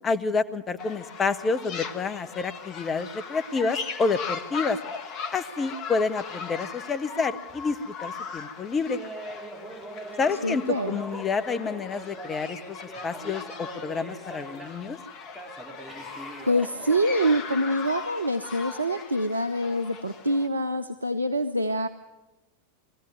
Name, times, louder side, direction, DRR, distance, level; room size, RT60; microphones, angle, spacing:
voice 1, 0.0-4.8 5.3-9.0 10.2-12.8 13.0-15.0, left 4 dB, 20° left, 10 dB, 1.1 m, -28 dB
sound 1, 0.8-20.5, left 5 dB, 35° left, 1.5 m, -39 dB
Laughter, 8.9-14.9 15.3-17.9, right 1 dB, 10° right, 3.9 m, -42 dB
voice 2, 10.4-11.0 16.5-21.9, equal, 80° right, 10 dB, 0.7 m, -25 dB
21.5 x 15.0 x 9.3 m, 1.0 s
figure-of-eight pair, 90°, 0 cm